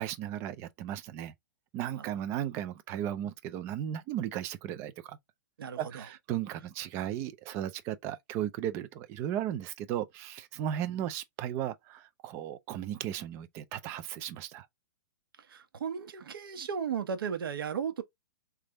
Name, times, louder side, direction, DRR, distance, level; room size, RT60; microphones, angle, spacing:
voice 1, 0.0-1.3 1.7-5.2 5.8-14.7, right 11 dB, 20° right, 0.4 m, -35 dB
voice 2, 5.6-6.1 15.4-18.0, right 7 dB, 80° right, 1.1 m, -35 dB
3.4 x 3.2 x 3.8 m
hypercardioid pair, 165°, 12 cm